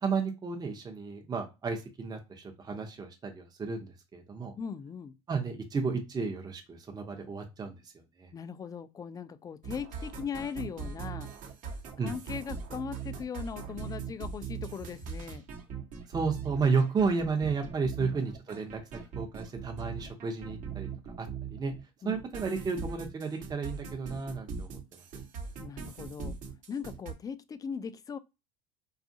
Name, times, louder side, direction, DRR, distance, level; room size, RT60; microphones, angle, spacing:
voice 1, 0.0-4.5 5.3-7.9 8.2-8.3 12.0-12.1 16.1-20.9 21.2-21.7 22.0-25.0, right 5 dB, 25° right, 0.7 m, -32 dB
voice 2, 4.6-5.2 8.3-11.3 12.0-15.5 18.0-18.2 22.0-22.2 25.6-26.4 26.7-28.2, left 6 dB, 20° left, 0.3 m, -39 dB
sound 1, 9.6-21.8 22.1-27.1, right 6 dB, 55° right, 0.9 m, -40 dB
2.6 x 2.4 x 2.6 m
supercardioid pair, 85°, 16 cm